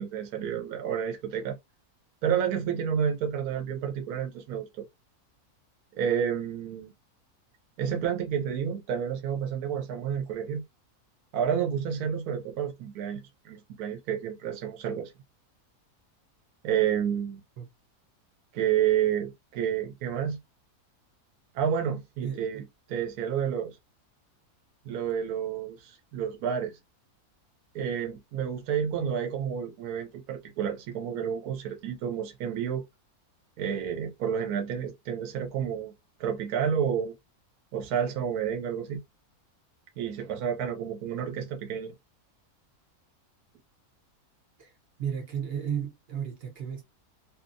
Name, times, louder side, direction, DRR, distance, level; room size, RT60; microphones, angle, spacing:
voice 1, 0.0-1.6 2.2-4.7 5.9-6.9 7.8-10.6 11.3-15.1 16.6-17.4 18.5-20.4 21.5-22.6 22.9-23.8 24.8-26.7 27.7-32.8 33.6-35.9 36.2-37.1 37.7-39.0 40.0-41.9, right 8 dB, 75° right, 1.1 m, -30 dB
voice 2, 22.2-22.7 44.6-44.7 45.0-46.8, right 8 dB, 50° right, 0.8 m, -34 dB
2.7 x 2.4 x 2.5 m
omnidirectional pair, 1.6 m